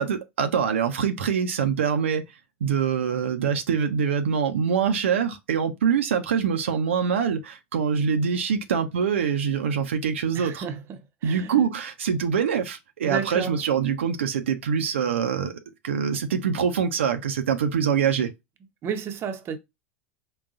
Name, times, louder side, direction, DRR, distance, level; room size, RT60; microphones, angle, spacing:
voice 1, 0.0-2.2 2.6-10.6 11.2-15.5 15.8-18.3, right 7 dB, 80° right, 0.6 m, -24 dB
voice 2, 10.3-11.6 13.0-13.6 18.8-19.6, right 7 dB, 40° right, 0.7 m, -32 dB
3.9 x 2.3 x 3.7 m
hypercardioid pair, 95°, 7 cm